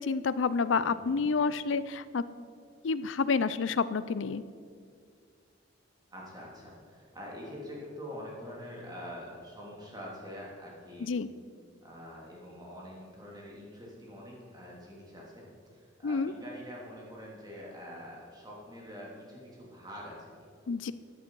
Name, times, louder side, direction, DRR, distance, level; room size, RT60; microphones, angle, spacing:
voice 1, 0.0-2.2 2.8-4.4 11.0-11.3 16.0-16.3 20.7-20.9, left 4 dB, 80° left, 15 dB, 0.5 m, -29 dB
voice 2, 0.8-1.3 6.1-11.1 11.8-20.7, equal, 20° right, -3 dB, 2.9 m, -45 dB
14.0 x 10.0 x 4.7 m, 2.1 s
head